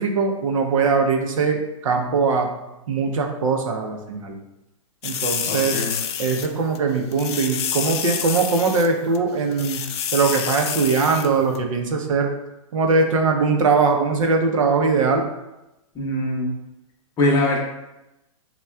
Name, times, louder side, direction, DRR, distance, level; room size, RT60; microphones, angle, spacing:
voice 1, 0.0-2.5 2.9-4.4 5.0-5.8 6.2-9.8 10.1-12.3 12.7-15.2, right 4 dB, 70° right, 3 dB, 0.7 m, -21 dB
sound 1, 5.0-6.5 6.7-6.8 7.1-8.9 9.1-9.2 9.5-11.3 11.5-11.6, left 8 dB, 50° left, 0.4 m, -28 dB
voice 2, 5.4-6.0 15.9-16.5 17.2-17.6, left 1 dB, 20° left, -3 dB, 0.8 m, -22 dB
5.4 x 2.3 x 2.3 m, 0.94 s
hypercardioid pair, 150°, 18 cm